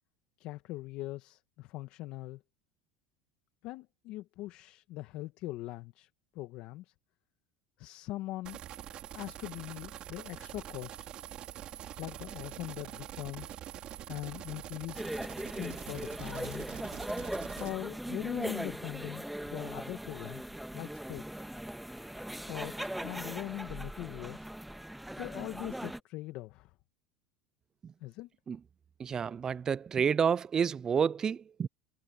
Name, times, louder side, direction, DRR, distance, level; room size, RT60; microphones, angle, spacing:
voice 1, 0.4-2.4 3.6-6.1 6.3-6.9 7.8-8.6 9.1-11.1 12.0-13.6 14.1-15.1 15.5-16.8 17.6-21.2 22.5-24.5 25.2-26.7 28.0-28.3, left 17 dB, 60° left, 1.8 m, -41 dB
sound 1, 8.4-17.7, right 11 dB, 45° right, 5.2 m, -45 dB
sound 2, 14.9-26.0, right 1 dB, 5° right, 1.8 m, -40 dB
voice 2, 29.0-31.7, right 7 dB, 30° right, 0.5 m, -29 dB
supercardioid pair, 100°, 2 cm